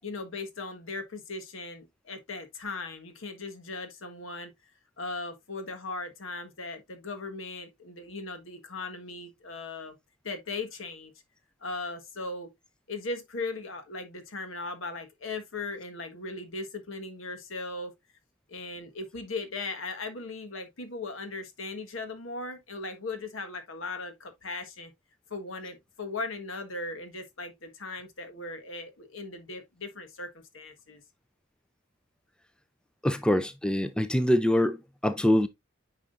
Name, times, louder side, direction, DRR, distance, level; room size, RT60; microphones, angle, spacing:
voice 1, 0.0-4.5 5.0-10.0 10.2-11.1 11.6-12.5 12.9-17.9 18.5-24.9 25.3-31.0, left 3 dB, 70° left, 1.4 m, -38 dB
voice 2, 33.0-35.5, left 1 dB, 5° left, 0.4 m, -24 dB
9.2 x 4.9 x 2.5 m
head